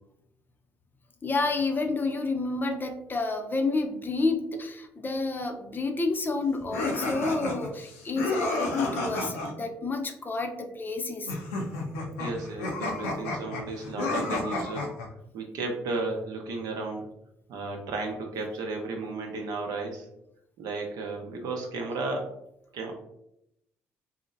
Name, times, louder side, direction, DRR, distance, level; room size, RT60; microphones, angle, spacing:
voice 1, 1.2-11.3, left 3 dB, 30° left, 4 dB, 0.5 m, -29 dB
sound 1, 6.7-9.5 11.3-15.1, left 2 dB, 85° left, 0.5 m, -31 dB
voice 2, 12.2-14.9 15.3-17.1 17.5-20.1 20.6-22.3 22.7-22.9, right 3 dB, 70° right, 2 dB, 0.6 m, -34 dB
2.7 x 2.1 x 2.5 m, 0.79 s
hypercardioid pair, 55°, 7 cm